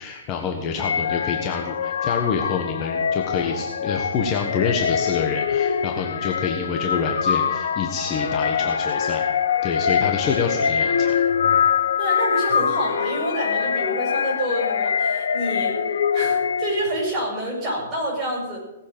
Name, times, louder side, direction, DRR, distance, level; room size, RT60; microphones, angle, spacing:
voice 1, 0.0-9.2 9.6-11.2, left 6 dB, 20° left, 2 dB, 1.3 m, -27 dB
sound 1, 0.8-17.0, left 7 dB, 85° left, 1.1 m, -24 dB
voice 2, 12.0-15.8 16.1-18.6, right 1 dB, 15° right, -4 dB, 6.7 m, -27 dB
18.5 x 7.6 x 8.8 m, 1.0 s
hypercardioid pair, 175°, 0 cm